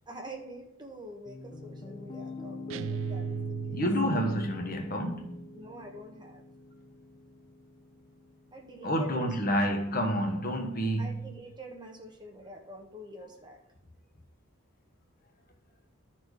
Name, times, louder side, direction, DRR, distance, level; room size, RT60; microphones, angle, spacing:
voice 1, 0.1-3.9 5.5-6.4 8.5-10.0 11.0-13.6, equal, 20° right, 1.3 m, -46 dB
Piano, 1.3-9.4, left 1 dB, 25° left, 0.6 m, -45 dB
sound 1, 2.7-4.4, right 6 dB, 65° right, 0.3 m, -36 dB
voice 2, 3.7-5.5 8.8-11.2, equal, 45° left, 1.3 m, -29 dB
12.5 x 4.4 x 4.9 m
head